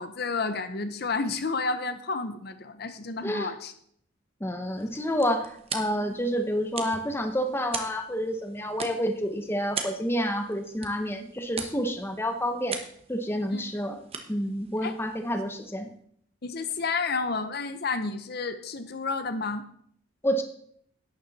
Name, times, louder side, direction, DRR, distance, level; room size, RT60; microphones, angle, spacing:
voice 1, 0.0-3.7 13.5-13.6 14.8-14.9 16.4-19.7, left 4 dB, 50° left, 10 dB, 0.7 m, -31 dB
voice 2, 3.2-3.5 4.4-12.8 13.1-14.0 14.3-15.9 20.2-20.4, equal, 10° left, 6 dB, 0.8 m, -29 dB
sound 1, 4.6-15.9, right 5 dB, 30° right, 1.1 m, -41 dB
11.5 x 9.4 x 4.1 m, 0.66 s
head